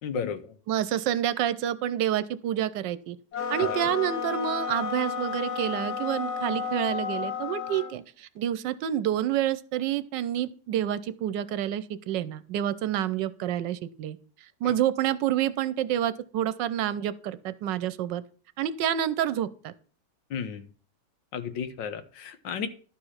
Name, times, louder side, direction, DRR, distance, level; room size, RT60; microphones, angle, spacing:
voice 1, 0.0-0.6 3.6-3.8 14.6-14.7 20.3-20.7 21.3-22.7, left 7 dB, 80° left, 11 dB, 1.7 m, -33 dB
voice 2, 0.7-3.2 3.5-14.2 14.6-18.2 18.6-19.7, right 11 dB, 80° right, 15 dB, 1.3 m, -28 dB
sound 1, 3.3-8.0, left 6 dB, 65° left, 1.5 m, -32 dB
11.5 x 4.9 x 5.6 m, 0.42 s
omnidirectional pair, 1.9 m